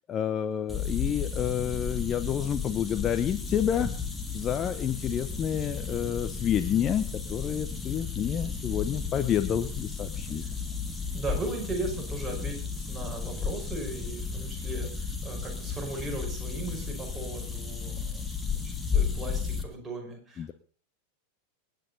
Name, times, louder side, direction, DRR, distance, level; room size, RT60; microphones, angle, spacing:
voice 1, 0.1-3.9 4.3-10.4 20.4-20.5, left 9 dB, 25° left, 10 dB, 0.8 m, -29 dB
sound 1, 0.7-19.6, left 5 dB, 10° left, 1.9 m, -33 dB
voice 2, 11.1-20.5, right 2 dB, 10° right, -1 dB, 5.3 m, -37 dB
26.5 x 9.4 x 4.1 m, 0.41 s
figure-of-eight pair, 90°, 0 cm